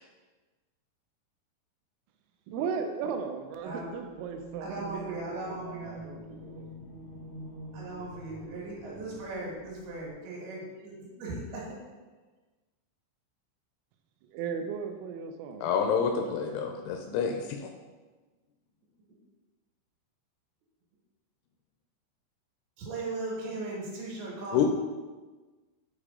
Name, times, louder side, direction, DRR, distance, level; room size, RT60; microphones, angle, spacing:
voice 1, 2.5-6.7 14.3-15.9, right 6 dB, 90° right, 5 dB, 3.1 m, -37 dB
voice 2, 3.6-4.1 4.6-6.0 7.7-11.8 22.8-24.7, right 2 dB, 70° right, -3 dB, 3.7 m, -38 dB
sound 1, 4.1-10.1, right 2 dB, 40° left, 0.8 m, -46 dB
voice 3, 15.6-17.7 24.5-24.7, left 7 dB, 85° left, 4 dB, 2.7 m, -28 dB
8.7 x 4.8 x 3.7 m, 1.3 s
omnidirectional pair, 5.6 m